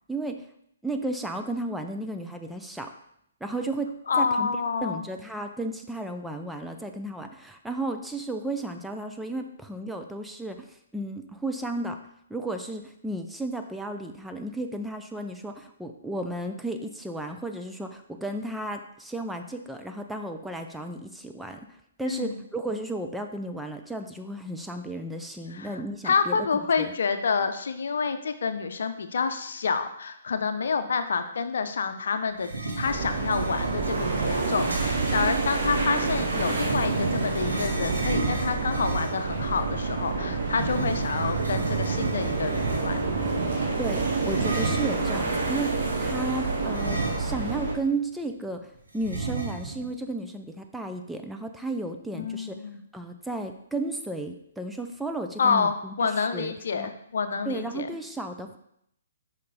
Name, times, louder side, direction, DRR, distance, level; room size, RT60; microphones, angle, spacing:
voice 1, 0.1-0.5 0.8-2.9 3.4-4.5 4.8-12.0 12.3-21.7 22.0-26.4 26.8-26.9 43.8-52.6 52.9-55.9 56.3-56.9 57.5-58.6, right 2 dB, 5° right, 4 dB, 0.5 m, -33 dB
voice 2, 4.1-5.1 22.1-22.4 25.5-43.0 52.1-52.8 55.4-57.9, left 5 dB, 65° left, 9 dB, 0.6 m, -28 dB
sound 1, 32.4-35.3 36.1-39.3 40.5-43.1 44.2-45.1 46.7-47.6 47.9-48.0 49.0-49.9, right 3 dB, 85° right, 1.6 m, -33 dB
sound 2, 32.8-47.7, right 3 dB, 60° right, 1.8 m, -28 dB
5.8 x 5.3 x 3.9 m, 0.74 s
hypercardioid pair, 135°, 0 cm